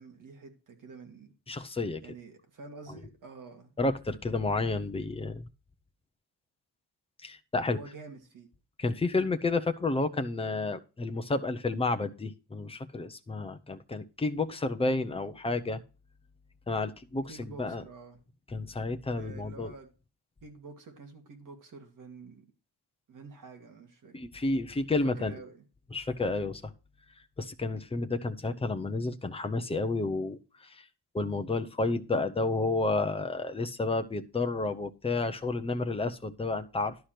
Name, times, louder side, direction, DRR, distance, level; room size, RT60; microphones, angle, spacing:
voice 1, 0.0-1.3 2.0-3.8 7.6-8.5 17.3-18.2 19.1-19.9 20.4-22.5 23.1-24.2 25.0-25.6, right 4 dB, 50° right, 2.3 m, -48 dB
voice 2, 1.5-2.0 3.8-5.5 7.2-7.8 8.8-15.8 16.7-17.8 18.5-19.7 24.1-25.3 25.9-26.7 27.4-30.8 31.1-37.0, left 3 dB, 15° left, 0.7 m, -31 dB
12.0 x 4.9 x 5.9 m
wide cardioid pair, 165°, 42 cm